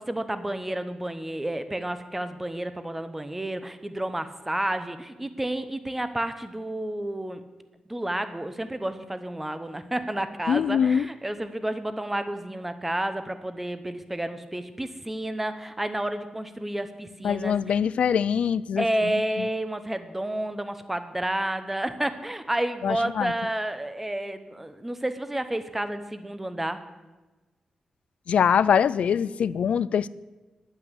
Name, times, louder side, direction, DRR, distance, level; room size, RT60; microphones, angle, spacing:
voice 1, 0.0-7.4 7.9-17.8 18.8-26.8, right 1 dB, 10° right, 10 dB, 0.7 m, -30 dB
voice 2, 10.5-11.1 17.2-19.1 19.4-19.5 22.8-23.3 28.3-30.1, left 7 dB, 70° left, 18 dB, 0.3 m, -23 dB
10.0 x 8.9 x 7.9 m, 1.2 s
wide cardioid pair, 175°, 2 cm